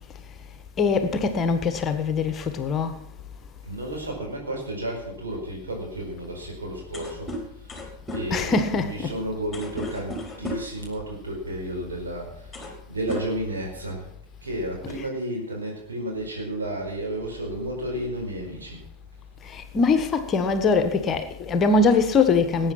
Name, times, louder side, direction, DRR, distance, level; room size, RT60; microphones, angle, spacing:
voice 1, 0.8-3.0 8.3-9.1 19.5-22.7, left 4 dB, 25° left, 1.3 m, -22 dB
voice 2, 3.6-7.3 7.6-7.7 8.1-12.6 12.9-14.1 14.4-18.8, right 1 dB, 70° right, 4.7 m, -32 dB
sound 1, 6.9-10.8 11.8-12.0 12.3-12.8 13.1-14.0, equal, 5° left, 3.4 m, -35 dB
18.5 x 8.8 x 5.9 m
figure-of-eight pair, 90°, 0 cm